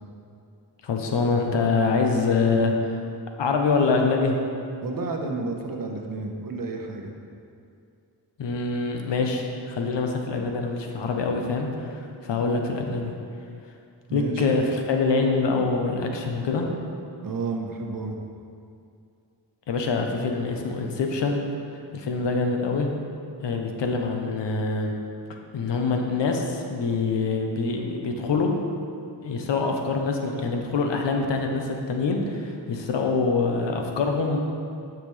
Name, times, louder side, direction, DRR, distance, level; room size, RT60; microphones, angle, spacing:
voice 1, 0.8-3.0 3.4-4.4 8.4-13.1 14.1-16.7 19.7-21.4 21.9-23.0 23.4-24.9 25.5-28.6 29.2-34.4, left 4 dB, 70° left, 3 dB, 1.0 m, -25 dB
voice 2, 4.8-7.1 14.1-14.5 17.2-18.2, right 3 dB, 50° right, 2 dB, 1.1 m, -31 dB
10.5 x 6.0 x 3.3 m, 2.4 s
cardioid pair, 80°, 45 cm